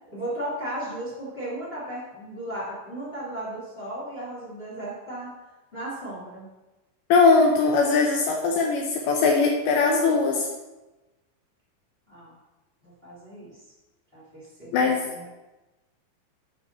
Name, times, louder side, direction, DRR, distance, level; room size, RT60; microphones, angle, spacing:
voice 1, 0.0-5.3 5.7-6.5 12.1-12.3 12.8-13.6 14.1-15.3, right 1 dB, 20° left, -7 dB, 1.7 m, -35 dB
voice 2, 7.1-10.5 14.7-15.0, left 4 dB, 75° left, 0 dB, 2.9 m, -20 dB
12.0 x 5.5 x 4.3 m, 1.1 s
omnidirectional pair, 5.5 m